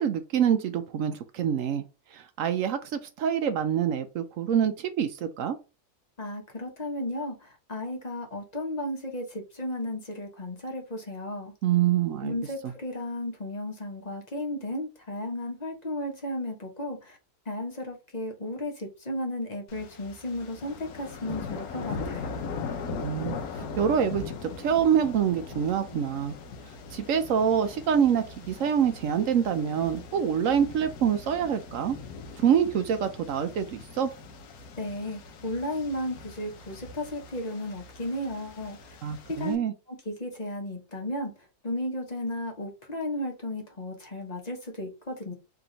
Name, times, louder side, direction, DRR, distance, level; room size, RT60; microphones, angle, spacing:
voice 1, 0.0-1.8 2.1-5.6 11.6-12.3 22.9-26.4 26.9-32.0 32.4-34.1 39.0-39.7, right 8 dB, 70° right, 0.8 m, -26 dB
voice 2, 6.2-11.5 12.2-17.2 17.5-22.3 34.8-39.0 39.3-39.6 39.9-41.3 41.6-45.3, left 1 dB, 30° left, 0.9 m, -34 dB
sound 1, 19.7-39.6, left 5 dB, 70° left, 1.2 m, -40 dB
3.4 x 2.9 x 3.8 m
omnidirectional pair, 1.6 m